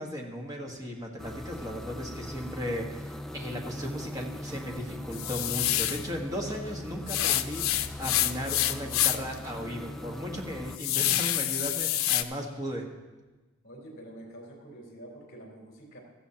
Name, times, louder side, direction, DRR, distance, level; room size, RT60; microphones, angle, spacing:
voice 1, 0.0-12.8, equal, 15° right, -1 dB, 1.4 m, -36 dB
sound 1, 1.2-10.8, left 1 dB, ahead, 0.3 m, -40 dB
sound 2, 5.1-6.1 7.1-9.3 9.8-9.9 10.3-12.2, left 13 dB, 85° left, 0.5 m, -27 dB
sound 3, 6.5-6.9 8.0-8.6 9.4-10.0 11.0-11.6, equal, 60° right, 4.2 m, -52 dB
voice 2, 13.6-16.0, right 1 dB, 45° left, -1 dB, 3.7 m, -47 dB
16.5 x 13.5 x 2.9 m, 1.2 s
head